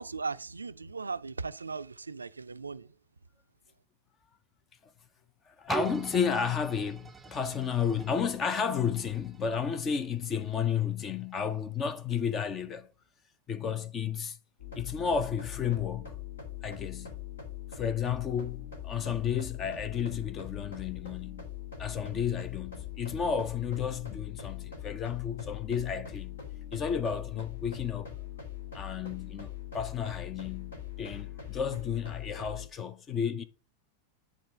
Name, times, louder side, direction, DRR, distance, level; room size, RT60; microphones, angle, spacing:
voice 1, 0.0-2.9, right 4 dB, 80° right, 0.4 m, -38 dB
voice 2, 5.5-12.9 13.5-14.4 14.7-16.1 16.6-17.1 17.7-21.5 21.8-26.4 26.7-28.1 28.7-33.4, left 7 dB, 25° left, 0.7 m, -32 dB
sound 1, 5.7-11.4 12.0-12.1, right 6 dB, 15° right, 0.5 m, -43 dB
sound 2, 14.6-32.7, left 10 dB, 65° left, 2.5 m, -42 dB
10.0 x 3.7 x 4.9 m
figure-of-eight pair, 90°, 0 cm